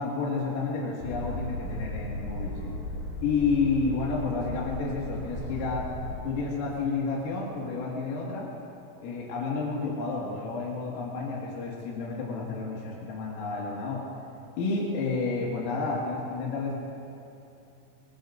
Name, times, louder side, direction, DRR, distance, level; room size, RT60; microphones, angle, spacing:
voice 1, 0.0-2.7 3.2-5.9 6.2-8.5 9.0-14.0 14.6-16.8, left 4 dB, 80° left, -4 dB, 4.6 m, -30 dB
Boat Water vehicle, 1.0-6.2, left 1 dB, 65° left, 5.6 m, -36 dB
24.5 x 22.5 x 2.6 m, 2.8 s
omnidirectional pair, 5.8 m